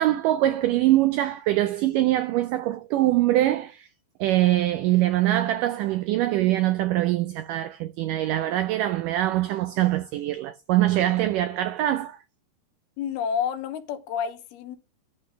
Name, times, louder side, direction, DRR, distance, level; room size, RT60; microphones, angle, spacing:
voice 1, 0.0-3.9 4.2-12.2, right 14 dB, 85° right, 1.9 m, -23 dB
voice 2, 13.0-14.8, left 7 dB, 85° left, 3.0 m, -29 dB
11.5 x 3.9 x 6.3 m
omnidirectional pair, 4.4 m